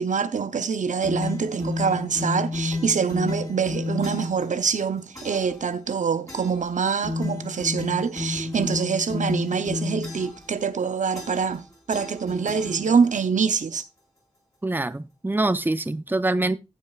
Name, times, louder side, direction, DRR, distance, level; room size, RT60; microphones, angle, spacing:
voice 1, 0.0-13.8, right 6 dB, 85° right, 0.7 m, -25 dB
sound 1, 1.0-4.5 5.1-5.6 6.3-6.7 7.0-10.5 11.1-11.6 11.9-13.2, left 3 dB, 25° left, 6.2 m, -31 dB
voice 2, 14.6-16.6, right 2 dB, 15° right, 0.6 m, -24 dB
14.0 x 7.7 x 2.3 m
wide cardioid pair, 60°, 13 cm